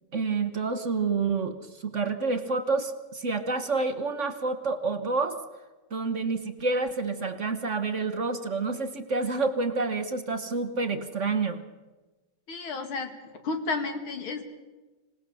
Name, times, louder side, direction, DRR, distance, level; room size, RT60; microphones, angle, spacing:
voice 1, 0.1-5.4 5.9-11.6, right 4 dB, 45° right, 9 dB, 1.2 m, -28 dB
voice 2, 12.5-13.1 13.4-14.4, left 3 dB, 80° left, 6 dB, 3.0 m, -31 dB
26.0 x 18.5 x 6.9 m, 1.2 s
omnidirectional pair, 2.3 m